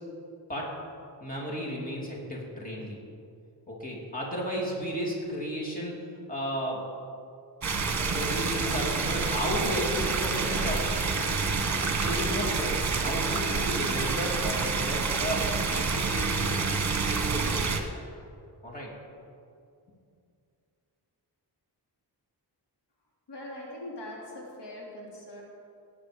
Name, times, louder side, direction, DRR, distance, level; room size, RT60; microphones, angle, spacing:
voice 1, 1.2-3.0 3.7-6.0 6.3-6.8 8.0-10.8 12.0-16.5 17.1-17.7 18.6-18.9, equal, 20° left, -4 dB, 2.8 m, -33 dB
sound 1, 7.6-17.8, right 4 dB, 40° right, 1.3 m, -28 dB
voice 2, 23.3-25.4, left 1 dB, 80° left, -3 dB, 3.1 m, -41 dB
18.5 x 8.7 x 5.1 m, 2.4 s
wide cardioid pair, 140°, 41 cm